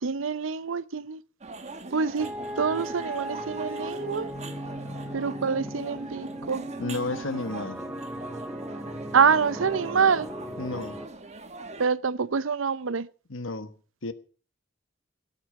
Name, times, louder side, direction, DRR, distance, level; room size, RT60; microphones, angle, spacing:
voice 1, 0.0-1.2 1.9-2.3 2.6-4.3 5.1-6.7 9.1-10.3 11.8-13.1, right 6 dB, 90° right, 0.6 m, -26 dB
sound 1, 1.4-11.9, right 3 dB, 35° right, 1.4 m, -42 dB
sound 2, 2.2-11.1, equal, 5° right, 1.4 m, -37 dB
voice 2, 6.8-7.8 10.6-11.0 13.3-13.7 14.0-14.1, left 2 dB, 90° left, 1.3 m, -32 dB
16.0 x 8.9 x 6.5 m
head